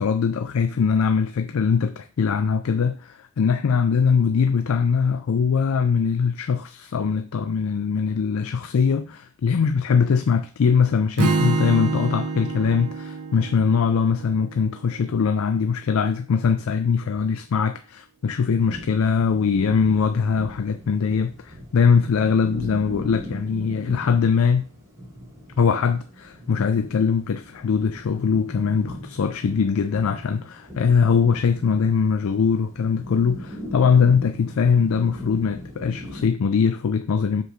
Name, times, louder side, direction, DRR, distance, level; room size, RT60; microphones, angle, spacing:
voice 1, 0.0-24.7 25.6-37.4, left 6 dB, 70° left, 0.4 m, -21 dB
Strum, 11.2-15.3, right 3 dB, 85° right, 0.7 m, -27 dB
sound 1, 18.6-36.3, equal, 15° right, 1.8 m, -39 dB
6.5 x 5.1 x 3.1 m
head